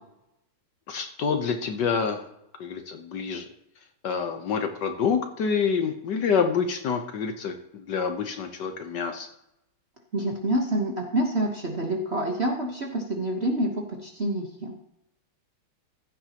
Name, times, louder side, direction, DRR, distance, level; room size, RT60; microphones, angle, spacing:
voice 1, 0.9-2.2 2.6-3.4 4.0-9.3, left 6 dB, 60° left, 6 dB, 1.4 m, -27 dB
voice 2, 10.1-14.7, right 1 dB, 40° right, 1 dB, 1.1 m, -27 dB
15.0 x 9.5 x 2.9 m, 0.83 s
omnidirectional pair, 2.3 m